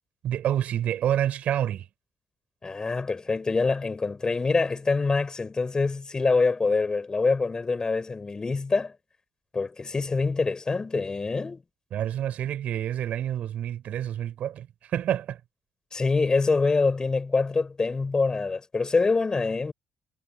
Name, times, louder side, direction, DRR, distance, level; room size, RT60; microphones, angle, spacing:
voice 1, 0.2-1.8 11.9-15.4, right 10 dB, 75° right, 5.1 m, -28 dB
voice 2, 2.6-8.9 9.5-11.6 15.9-19.7, left 4 dB, 30° left, 6.9 m, -25 dB
cardioid pair, 85°, 2 cm